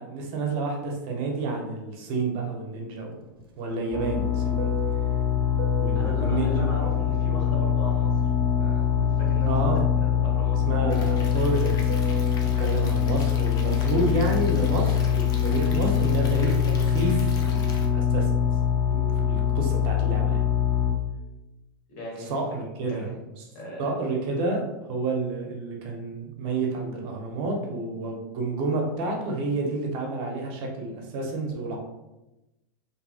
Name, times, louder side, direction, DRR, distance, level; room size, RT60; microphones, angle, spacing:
voice 1, 0.0-3.2 3.6-4.7 5.8-7.0 9.5-9.8 10.7-11.8 12.6-17.2 17.4-18.5 18.9-20.4 22.2-23.1 23.4-23.5 23.8-24.6 24.9-31.8, right 3 dB, 50° right, 1 dB, 0.7 m, -29 dB
Fixed-wing aircraft airplane, 3.0-8.3 8.7-14.5, right 7 dB, 85° right, 0.5 m, -41 dB
sound 1, 3.9-20.9, left 8 dB, 5° left, 1.2 m, -23 dB
voice 2, 5.9-8.2 8.6-9.5 10.2-10.9 21.9-22.3 22.8-23.3 23.5-23.9, equal, 60° left, -3 dB, 1.2 m, -38 dB
Stream / Liquid, 10.9-17.9, left 4 dB, 35° left, 0.5 m, -43 dB
2.6 x 2.5 x 2.3 m, 0.99 s
hypercardioid pair, 110°, 12 cm